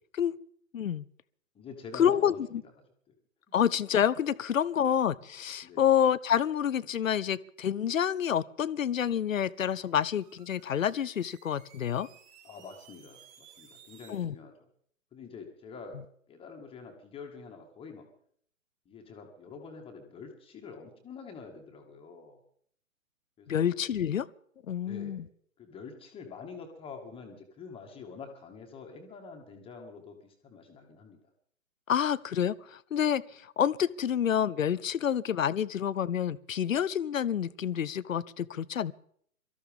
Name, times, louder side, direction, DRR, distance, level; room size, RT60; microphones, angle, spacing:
voice 1, 0.7-1.1 2.0-2.6 3.5-12.1 14.1-14.3 23.5-24.3 24.7-25.2 31.9-33.2 33.6-38.9, left 9 dB, 70° left, 19 dB, 0.7 m, -28 dB
voice 2, 1.5-2.6 5.6-5.8 12.4-14.7 15.1-16.0 16.3-18.0 18.9-22.4 23.4-23.7 24.8-25.2 25.6-31.2, left 5 dB, 15° left, 2 dB, 2.0 m, -46 dB
sound 1, 9.4-14.3, right 8 dB, 30° right, 4.2 m, -58 dB
23.5 x 14.0 x 3.6 m, 0.63 s
figure-of-eight pair, 125°, 41 cm